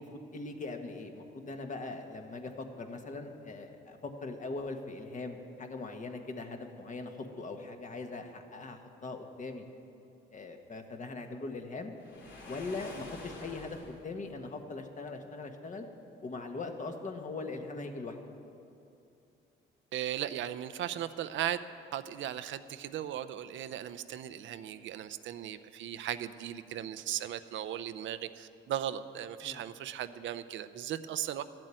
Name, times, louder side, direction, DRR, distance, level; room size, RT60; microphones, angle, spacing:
voice 1, 0.0-9.6 10.3-11.9 12.5-15.9 16.2-18.2 29.4-29.6, left 3 dB, 40° left, 4 dB, 1.4 m, -41 dB
Waves surf, 12.0-14.1, left 2 dB, 65° left, 2.7 m, -47 dB
voice 2, 19.9-21.6 21.9-31.4, right 11 dB, 75° right, 11 dB, 0.6 m, -37 dB
13.0 x 7.7 x 9.0 m, 2.7 s
cardioid pair, 90°, 20 cm